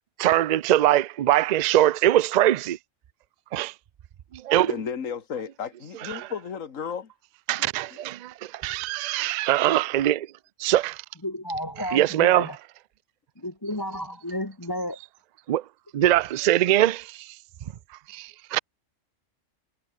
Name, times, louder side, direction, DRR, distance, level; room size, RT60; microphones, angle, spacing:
voice 1, 0.2-2.8 3.5-3.7 4.3-4.7 6.0-6.3 7.5-8.1 8.6-10.3 10.6-11.0 11.9-12.5 15.5-15.6 15.9-17.3 18.1-18.6, right 13 dB, 75° right, 0.4 m, -22 dB
voice 2, 4.7-7.1 7.6-7.7, left 7 dB, 80° left, 1.9 m, -34 dB
voice 3, 11.2-12.6 13.4-15.0, left 1 dB, 15° left, 1.8 m, -32 dB
omnidirectional pair, 1.3 m